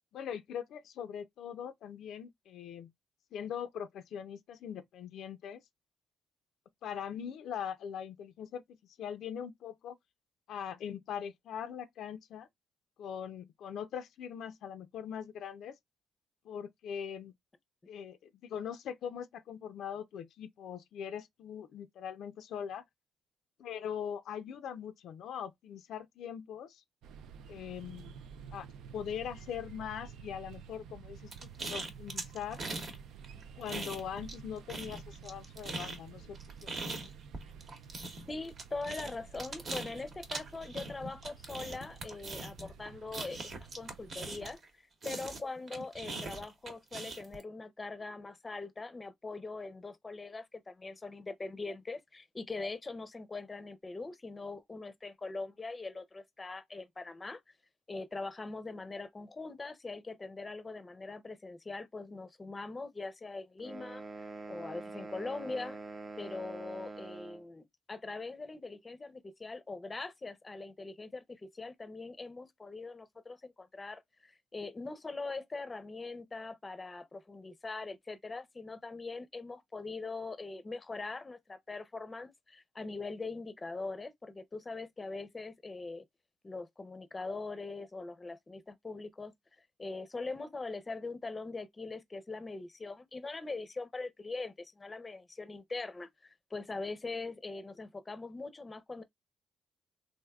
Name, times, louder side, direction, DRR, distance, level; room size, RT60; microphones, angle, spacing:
voice 1, 0.1-2.9 3.3-5.6 6.8-10.0 10.5-12.5 13.0-15.8 16.4-17.3 17.9-22.8 23.6-26.8 27.5-28.1 28.5-28.7 28.9-32.6 33.6-37.0, left 8 dB, 75° left, 0.4 m, -41 dB
sound 1, 27.0-44.6, right 7 dB, 85° right, 0.4 m, -51 dB
sound 2, 31.3-33.0 33.2-34.4 34.7-44.7 45.0-47.4, right 3 dB, 50° right, 1.0 m, -41 dB
voice 2, 38.3-57.4 57.9-64.0 64.5-65.8 66.2-86.0 86.4-89.3 89.8-99.0, left 3 dB, 25° left, 0.5 m, -42 dB
sound 3, 63.6-67.5, right 3 dB, 30° right, 0.5 m, -45 dB
3.4 x 2.5 x 2.3 m
cardioid pair, 90°, 0 cm